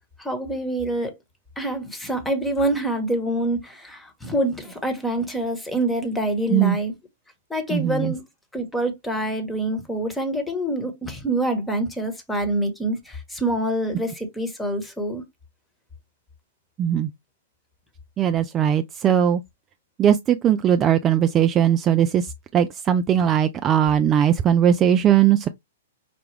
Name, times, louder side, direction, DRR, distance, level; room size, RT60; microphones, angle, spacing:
voice 1, 0.2-1.1 1.6-6.9 7.5-8.2 8.5-15.2, right 1 dB, 5° left, 1.2 m, -26 dB
voice 2, 7.7-8.1 16.8-17.1 18.2-19.4 20.0-22.3 22.5-25.5, right 9 dB, 25° right, 0.3 m, -19 dB
5.0 x 2.2 x 3.3 m
hypercardioid pair, 120°, 0 cm